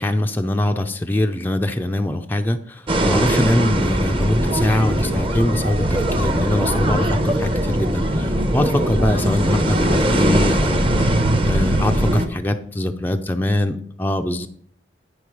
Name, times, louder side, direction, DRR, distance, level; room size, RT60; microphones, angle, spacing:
voice 1, 0.0-14.5, left 1 dB, 10° left, 5 dB, 0.4 m, -23 dB
sound 1, 2.9-12.3, equal, 30° right, 0.8 m, -20 dB
sound 2, 5.6-12.3, right 2 dB, 70° right, 0.6 m, -27 dB
10.0 x 5.2 x 4.7 m, 0.62 s
head